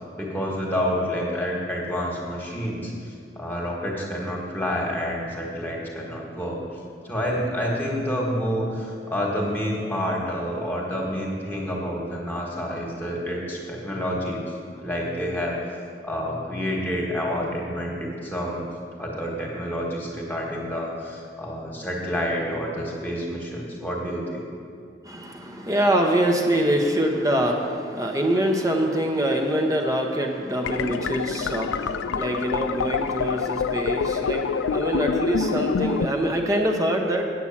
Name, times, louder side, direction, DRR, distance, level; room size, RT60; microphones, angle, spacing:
voice 1, 0.2-2.9 3.3-6.6 7.0-14.4 14.8-15.6 16.0-18.6 19.0-24.4, equal, 10° left, -3 dB, 1.5 m, -28 dB
voice 2, 25.0-37.2, right 1 dB, 20° right, 2 dB, 0.8 m, -24 dB
sound 1, 30.6-36.1, left 5 dB, 90° left, 0.4 m, -26 dB
8.4 x 8.1 x 7.3 m, 2.3 s
head